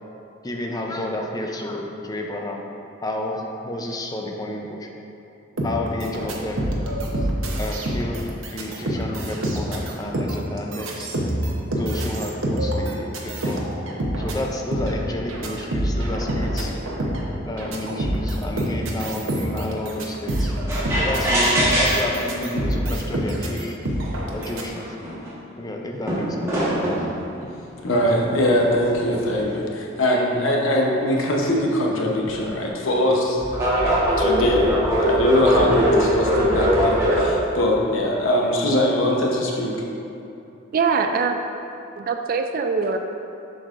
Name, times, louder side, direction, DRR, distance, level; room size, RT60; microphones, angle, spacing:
voice 1, 0.4-2.6 3.0-4.9 5.6-6.6 7.0-11.1 11.8-13.7 14.2-16.7 17.5-20.5 21.0-23.8 24.3-24.9 25.6-26.6, left 1 dB, 20° left, 1 dB, 0.5 m, -31 dB
sound 1, 5.6-24.7, right 1 dB, 85° right, 0.9 m, -26 dB
sound 2, 20.7-22.3 23.2-23.3 24.1-24.2 24.4-25.3 26.1-27.1 28.1-29.6 32.2-32.4 33.4-37.4, equal, 15° right, 1.3 m, -21 dB
voice 2, 27.8-33.4 34.2-34.7 35.0-39.8, equal, 80° left, -1 dB, 0.9 m, -22 dB
voice 3, 40.7-41.6 42.0-43.0, right 5 dB, 45° right, 5 dB, 0.3 m, -23 dB
7.7 x 6.3 x 2.5 m, 2.8 s
head